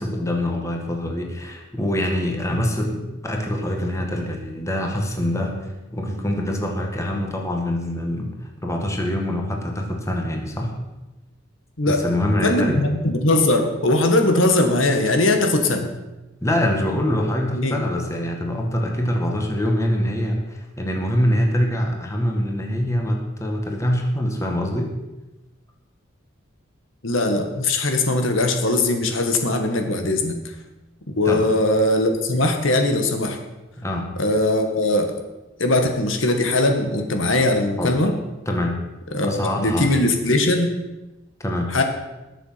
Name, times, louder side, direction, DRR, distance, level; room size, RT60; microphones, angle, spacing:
voice 1, 0.0-8.3 8.6-10.7 11.9-12.9 16.4-24.9 31.3-31.5 33.8-34.1 37.8-37.9 38.5-38.8 39.2-40.0 41.4-41.7, left 1 dB, 15° left, 1 dB, 1.9 m, -24 dB
voice 2, 12.4-15.9 17.5-17.8 27.0-30.4 31.2-33.4 34.2-35.1 35.6-38.1 39.1-40.8 41.7-41.8, left 2 dB, 70° left, 5 dB, 1.7 m, -20 dB
20.0 x 7.2 x 5.8 m, 1.0 s
head